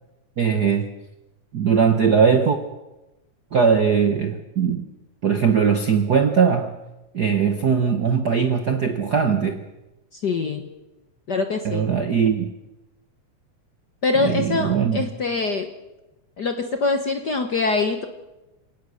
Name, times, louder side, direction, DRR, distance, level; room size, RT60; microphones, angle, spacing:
voice 1, 0.4-0.9 1.5-2.6 3.5-4.8 5.2-6.8 7.1-9.6 11.6-12.5 14.2-15.0, right 6 dB, 55° right, 7 dB, 1.1 m, -20 dB
voice 2, 10.1-10.6 11.3-11.9 14.0-15.7 16.4-18.1, left 3 dB, 50° left, 6 dB, 1.3 m, -24 dB
28.0 x 18.0 x 6.5 m, 1.0 s
omnidirectional pair, 3.3 m